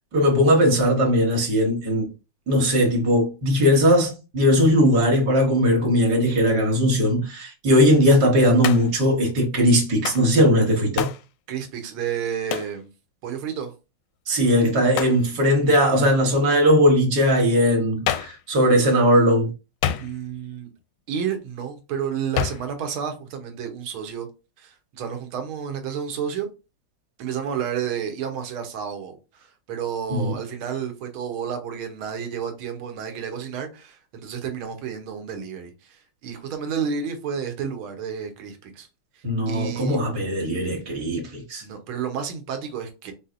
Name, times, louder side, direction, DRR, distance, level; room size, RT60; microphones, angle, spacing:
voice 1, 0.1-2.1 2.5-11.1 14.3-19.5 30.1-30.3 39.2-41.6, equal, 55° right, 1.8 m, -19 dB
Hands, 8.6-9.1 10.0-10.3 11.0-11.3 12.5-12.8 14.9-15.2 18.1-18.4 19.8-20.4 22.4-22.7, left 10 dB, 75° left, 1.1 m, -27 dB
voice 2, 11.5-12.9 13.2-13.7 20.0-20.7 21.1-24.3 24.6-26.5 27.2-38.9 39.1-40.0 41.6-43.1, right 7 dB, 85° right, 1.8 m, -31 dB
4.8 x 4.1 x 2.5 m
omnidirectional pair, 2.3 m